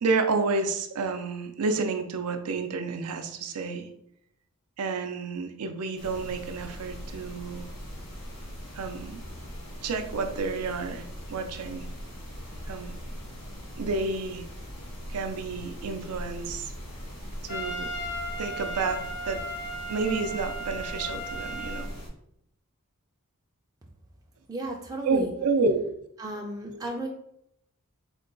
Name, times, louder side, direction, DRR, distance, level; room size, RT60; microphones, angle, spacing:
voice 1, 0.0-3.9 4.8-7.7 8.7-9.2 9.8-11.9 12.7-13.0 13.8-14.4 15.1-16.7 17.4-17.9 18.4-19.4 19.9-21.9 25.0-25.8, right 4 dB, 85° right, 6 dB, 0.5 m, -30 dB
sound 1, 6.0-22.1, equal, 85° left, 1.3 m, -40 dB
Trumpet, 17.5-21.9, equal, 55° left, 0.5 m, -36 dB
voice 2, 24.5-25.3 26.2-27.1, right 1 dB, 15° right, 0 dB, 0.4 m, -34 dB
3.7 x 2.2 x 3.8 m, 0.75 s
head